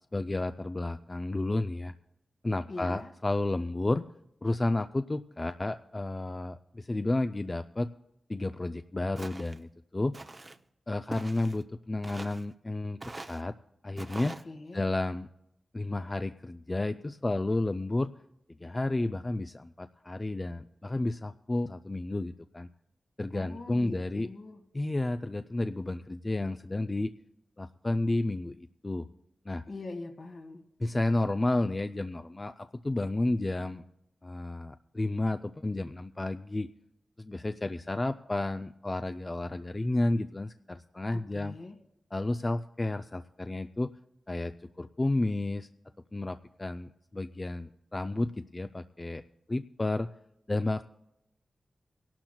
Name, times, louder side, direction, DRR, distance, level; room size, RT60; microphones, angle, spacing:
voice 1, 0.1-1.9 2.4-4.0 4.4-7.9 8.3-10.1 10.9-13.0 13.3-13.5 13.8-14.4 14.7-15.3 15.7-18.1 18.6-22.7 23.2-24.3 24.7-27.1 27.6-29.1 29.5-29.6 30.8-33.8 34.2-36.7 37.2-41.5 42.1-43.9 44.3-45.7 46.1-49.2 49.5-50.1 50.5-50.8, left 2 dB, 30° left, 9 dB, 0.4 m, -31 dB
voice 2, 2.7-3.1 14.2-14.8 23.3-24.6 29.7-30.6 41.1-41.8, left 3 dB, 65° left, 4 dB, 1.7 m, -43 dB
Walk footsteps, 9.2-9.6 10.1-10.6 11.1-11.6 12.0-12.5 13.0-13.4 14.0-14.4, right 2 dB, 35° right, 0.7 m, -43 dB
24.5 x 12.0 x 2.3 m, 0.80 s
cardioid pair, 65°, 0 cm